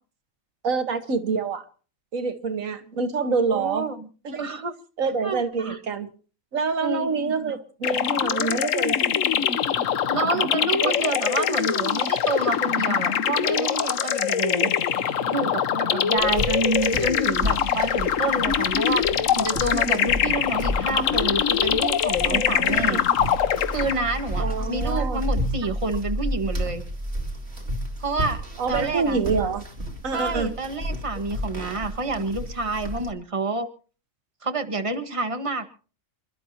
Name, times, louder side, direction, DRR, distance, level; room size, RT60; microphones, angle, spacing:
voice 1, 0.6-1.6 2.1-3.9 4.2-4.4 5.0-6.1 6.5-9.0 10.8-11.0 22.2-23.0 24.4-25.2 28.6-29.6 30.0-30.5, right 5 dB, 90° right, 1.7 m, -26 dB
voice 2, 3.5-4.1 4.4-4.7 5.2-5.8 6.8-7.5 10.1-14.7 15.2-19.1 19.3-23.0 23.7-26.8 28.0-28.4 28.7-29.2 30.1-33.7 34.4-35.7, right 3 dB, 25° right, 1.6 m, -28 dB
sound 1, 7.8-24.2, left 8 dB, 75° left, 1.2 m, -23 dB
sound 2, 16.2-33.1, equal, 50° right, 3.1 m, -31 dB
28.0 x 12.5 x 2.9 m
omnidirectional pair, 1.4 m